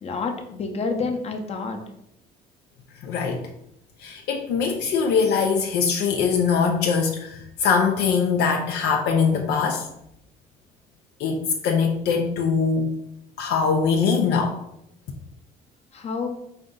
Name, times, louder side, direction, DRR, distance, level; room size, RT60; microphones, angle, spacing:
voice 1, 0.0-1.8 15.9-16.4, left 4 dB, 40° left, 4 dB, 0.7 m, -28 dB
voice 2, 3.0-3.4 4.0-9.9 11.2-12.9 13.4-14.6, left 5 dB, 80° left, 2 dB, 0.5 m, -22 dB
4.3 x 2.6 x 3.7 m, 0.78 s
cardioid pair, 110°, 17 cm